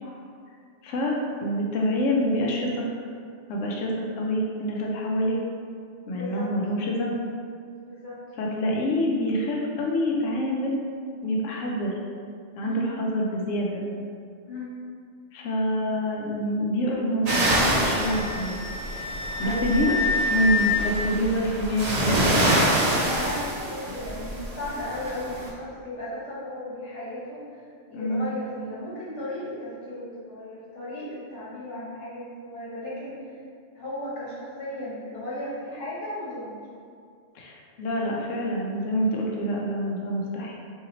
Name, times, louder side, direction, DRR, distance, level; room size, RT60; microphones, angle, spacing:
voice 1, 0.8-2.8 3.5-3.9 4.2-5.4 6.1-7.1 8.4-10.8 11.2-11.9 12.5-13.8 15.3-18.6 19.4-19.9 20.3-22.4 27.9-28.3 37.3-40.5, equal, 90° left, -2 dB, 0.9 m, -26 dB
voice 2, 6.1-6.5 7.8-8.2 12.6-13.0 14.4-14.7 19.4-20.0 23.0-27.6 27.9-33.1 33.7-36.6, left 1 dB, 65° left, -9 dB, 1.5 m, -35 dB
Wind instrument woodwind instrument, 17.3-20.8, left 4 dB, 50° left, 1.1 m, -28 dB
sound 1, 17.3-25.5, right 1 dB, 65° right, 0.4 m, -26 dB
2.9 x 2.7 x 3.8 m, 2.2 s
omnidirectional pair, 1.3 m